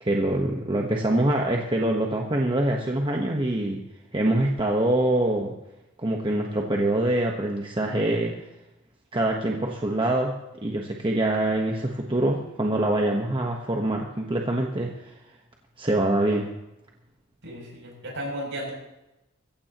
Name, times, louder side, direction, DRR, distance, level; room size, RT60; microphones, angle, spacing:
voice 1, 0.0-3.8 4.1-5.5 6.0-8.3 9.1-10.3 10.6-15.1 15.8-16.5, right 1 dB, 25° right, 0 dB, 1.2 m, -24 dB
voice 2, 17.4-18.7, equal, 60° right, -1 dB, 7.8 m, -34 dB
23.0 x 16.0 x 3.0 m, 0.92 s
head